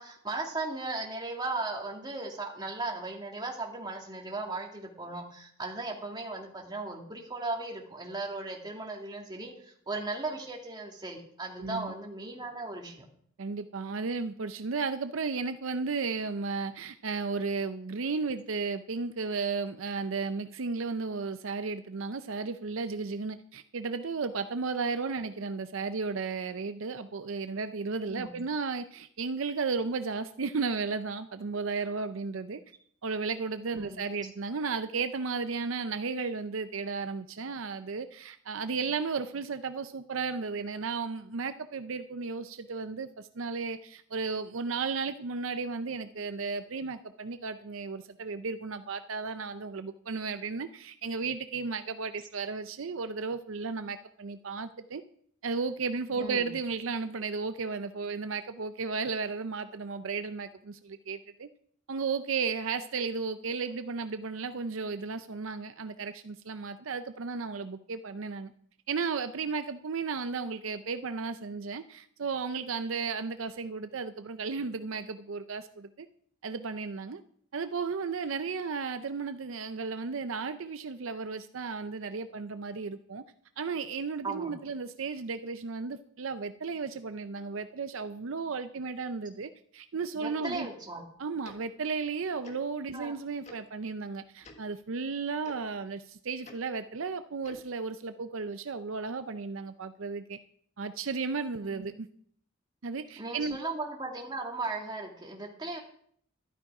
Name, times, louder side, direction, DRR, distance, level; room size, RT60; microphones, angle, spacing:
voice 1, 0.0-13.1 28.1-28.4 33.8-34.1 56.2-56.5 84.2-84.5 90.1-91.0 92.9-93.1 101.6-101.9 103.2-105.8, right 2 dB, 20° right, 0 dB, 2.2 m, -37 dB
voice 2, 11.6-11.9 13.4-32.6 33.0-55.0 55.4-61.5 61.9-68.5 68.9-76.1 76.4-77.2 77.5-83.2 83.6-90.7 91.2-100.4 100.8-102.1 102.8-103.6, right 4 dB, 70° right, 10 dB, 0.6 m, -34 dB
Tick-tock, 90.4-90.6 91.4-91.6 92.4-92.6 93.4-93.6 94.4-94.6 95.4-95.5 96.4-96.6 97.4-97.6, left 2 dB, 35° left, 1.7 m, -49 dB
12.5 x 12.0 x 4.8 m, 0.63 s
head